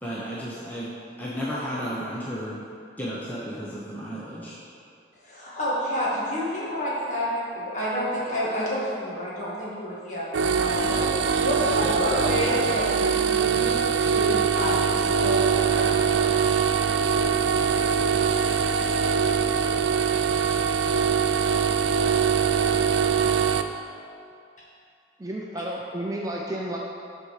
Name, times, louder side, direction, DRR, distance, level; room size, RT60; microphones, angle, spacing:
voice 1, 0.0-0.9 1.2-2.6 3.0-4.6, equal, 10° left, -8 dB, 0.9 m, -33 dB
voice 2, 5.2-10.2 10.6-13.7 14.0-16.5, equal, 40° left, -7 dB, 2.1 m, -29 dB
sound 1, 10.3-23.6, right 6 dB, 80° right, 0.4 m, -23 dB
voice 3, 25.2-26.8, right 1 dB, 20° right, -2 dB, 0.5 m, -31 dB
7.7 x 4.3 x 6.6 m, 2.4 s
head